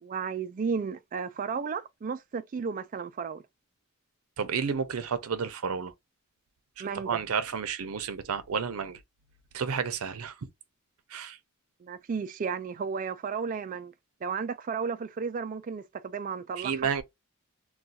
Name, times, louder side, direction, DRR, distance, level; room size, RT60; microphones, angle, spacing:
voice 1, 0.0-3.4 6.8-7.2 11.8-13.9 14.2-16.7, right 5 dB, 40° right, 0.3 m, -33 dB
voice 2, 4.4-5.9 6.8-9.0 9.5-10.5 11.1-11.4 16.6-17.0, right 6 dB, 90° right, 0.5 m, -31 dB
2.4 x 2.3 x 3.9 m
head